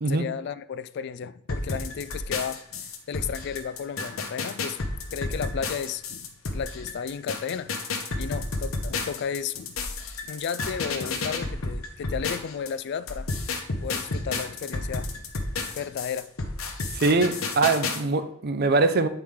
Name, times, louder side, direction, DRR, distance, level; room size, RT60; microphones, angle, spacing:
voice 1, 0.1-4.8 5.1-7.7 8.2-9.8 10.3-13.3 13.8-15.3 15.8-16.5, left 7 dB, 55° left, 0.3 m, -33 dB
sound 1, 1.5-12.7 13.1-18.0, left 3 dB, 75° left, 0.9 m, -31 dB
voice 2, 16.9-19.1, right 3 dB, 50° right, 0.6 m, -22 dB
8.7 x 4.6 x 3.6 m
head